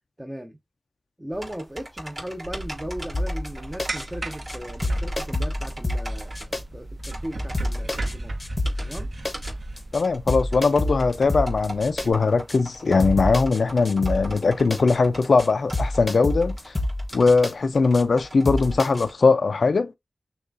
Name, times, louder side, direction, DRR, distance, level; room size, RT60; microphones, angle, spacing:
voice 1, 0.2-0.6 1.2-8.3 8.8-9.1, equal, 10° right, 0.7 m, -37 dB
sound 1, 1.3-19.1, right 1 dB, 35° right, 2.8 m, -41 dB
sound 2, 2.4-12.1, right 1 dB, 60° right, 0.6 m, -36 dB
sound 3, 3.1-3.5 3.8-4.0 4.3-4.6 4.8-6.6 7.0-7.1 7.5-8.1 8.4-9.0 9.2-9.5 9.8-10.0 10.3-12.1 12.5-12.6 13.0-13.6 13.8-14.4 14.7-15.0 15.2-15.5 15.7-17.5 17.9-18.0 18.4-19.0, left 1 dB, 30° left, 0.7 m, -27 dB
voice 2, 9.9-16.7 17.1-19.9, left 4 dB, 80° left, 0.3 m, -20 dB
6.6 x 2.3 x 2.5 m
wide cardioid pair, 70°, 0 cm